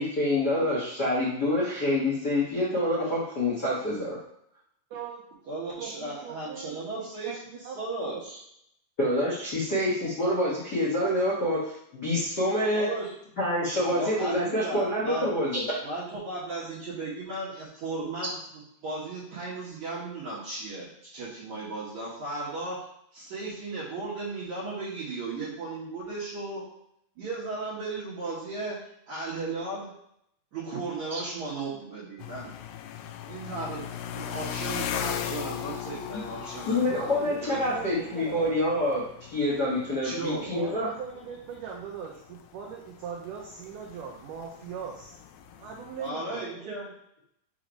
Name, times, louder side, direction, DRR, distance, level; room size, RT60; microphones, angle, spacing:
voice 1, 0.0-4.2 9.0-12.9 13.4-15.8 36.7-39.0 39.3-40.9, left 1 dB, 65° left, -7 dB, 0.9 m, -27 dB
voice 2, 4.9-5.2 5.8-7.4 7.7-8.2 36.9-37.4 37.7-38.6 40.5-45.2 45.6-46.7, right 7 dB, 80° right, -2 dB, 1.9 m, -40 dB
voice 3, 5.5-8.4 12.7-13.1 13.8-15.3 15.8-18.4 18.8-22.8 23.1-26.6 27.2-28.8 29.1-29.9 30.5-32.5 33.3-36.9 37.4-37.8 40.0-40.5 46.0-46.9, right 2 dB, 60° right, -9 dB, 2.4 m, -35 dB
sound 1, 32.2-46.1, left 10 dB, 85° left, 2.5 m, -39 dB
6.1 x 3.1 x 5.1 m, 0.72 s
omnidirectional pair, 4.4 m